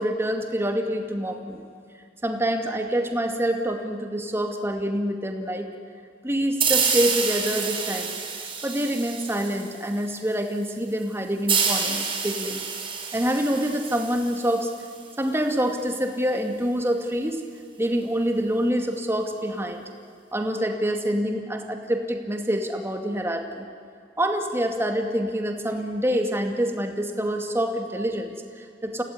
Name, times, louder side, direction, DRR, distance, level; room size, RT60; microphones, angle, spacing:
voice 1, 0.0-1.6 2.2-5.7 6.2-8.1 8.6-12.6 13.1-14.7 15.2-17.4 17.8-19.8 20.3-23.7 24.2-29.0, equal, 15° right, 4 dB, 2.3 m, -26 dB
sound 1, 6.6-10.0 11.5-15.0, right 6 dB, 30° right, 4.5 m, -28 dB
29.0 x 16.5 x 9.6 m, 2.3 s
head